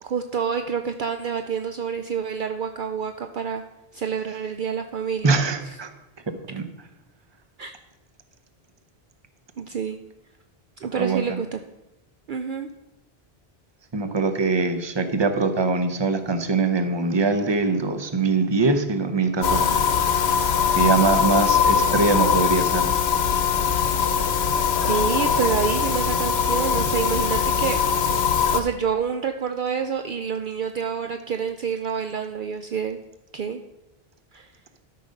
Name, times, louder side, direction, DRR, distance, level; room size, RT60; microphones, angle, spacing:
voice 1, 0.0-3.6 3.9-5.4 5.6-5.8 7.6-7.8 9.6-10.0 10.8-11.6 12.3-12.7 24.9-27.8 28.5-33.0 33.3-33.6 34.3-34.5, right 6 dB, 60° right, 6 dB, 0.7 m, -28 dB
voice 2, 5.2-5.9 6.5-6.7 11.0-11.4 13.9-19.8 20.8-22.9, right 4 dB, 30° right, 8 dB, 0.8 m, -23 dB
sound 1, 19.4-28.6, left 6 dB, 80° left, 1.0 m, -21 dB
12.5 x 5.7 x 5.3 m, 0.96 s
omnidirectional pair, 1.0 m